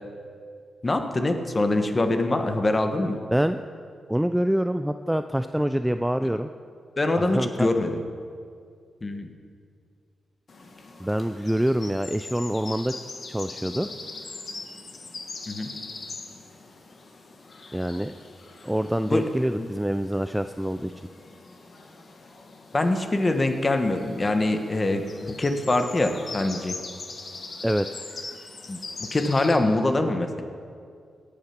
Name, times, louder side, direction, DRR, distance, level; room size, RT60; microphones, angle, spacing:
voice 1, 0.8-3.2 7.0-8.0 9.0-9.3 15.5-15.7 19.0-19.3 19.6-19.7 22.7-26.7 28.7-30.4, left 2 dB, 25° left, 6 dB, 1.2 m, -24 dB
voice 2, 3.3-3.6 4.1-6.5 7.2-7.7 11.0-12.9 13.3-13.9 17.7-18.2 18.6-20.9 27.6-28.0, equal, 5° right, 9 dB, 0.3 m, -26 dB
sound 1, 10.5-29.6, left 3 dB, 45° left, 1.6 m, -42 dB
17.0 x 8.7 x 5.9 m, 2.2 s
wide cardioid pair, 120°, 0 cm